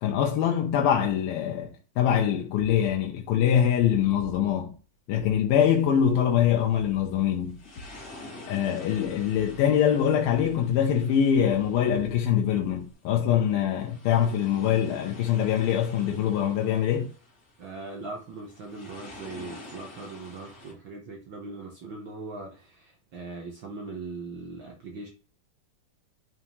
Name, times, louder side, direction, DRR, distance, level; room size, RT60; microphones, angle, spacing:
voice 1, 0.0-4.8 5.1-7.6 8.5-17.1, left 9 dB, 80° left, 2.7 m, -24 dB
sound 1, 5.5-20.7, left 2 dB, 30° left, 2.9 m, -49 dB
sound 2, 7.4-8.4 8.9-10.0 10.3-11.0 11.5-12.9, left 1 dB, 50° left, 4.0 m, -49 dB
voice 2, 17.6-25.1, right 3 dB, 90° right, 1.0 m, -40 dB
10.5 x 5.4 x 3.2 m
omnidirectional pair, 4.2 m